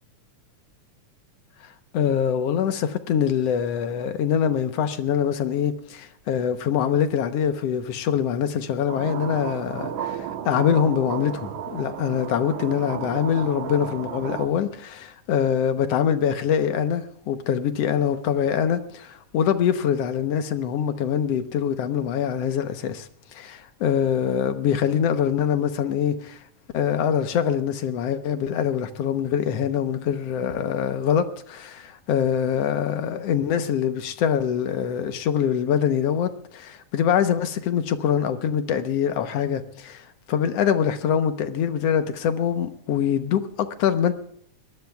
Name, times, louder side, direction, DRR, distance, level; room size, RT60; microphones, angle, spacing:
voice 1, 1.9-26.4 26.7-44.1, left 8 dB, 65° left, 1.8 m, -24 dB
sound 1, 8.9-14.5, right 8 dB, 65° right, 1.2 m, -33 dB
23.5 x 18.5 x 2.3 m
omnidirectional pair, 3.5 m